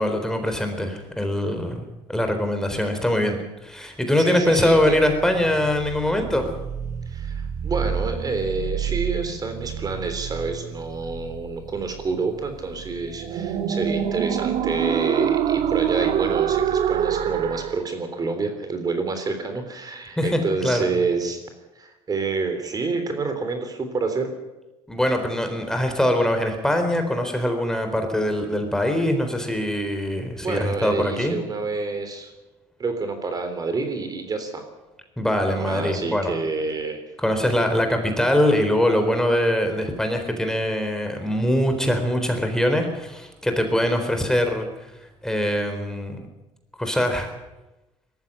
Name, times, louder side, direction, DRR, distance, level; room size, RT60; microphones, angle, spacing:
voice 1, 0.0-3.3 3.6-6.5 20.2-20.8 24.9-31.4 35.2-36.3 37.2-44.7 45.2-46.3 46.8-47.3, left 1 dB, 5° left, 5 dB, 4.0 m, -23 dB
voice 2, 4.2-5.0 7.1-21.4 21.7-24.3 30.4-32.3 32.8-34.6 35.5-37.0, right 4 dB, 35° right, 7 dB, 3.5 m, -28 dB
sound 1, 4.5-17.8, right 9 dB, 65° right, 1.6 m, -27 dB
19.0 x 14.5 x 9.9 m, 1.0 s
cardioid pair, 105°, 12 cm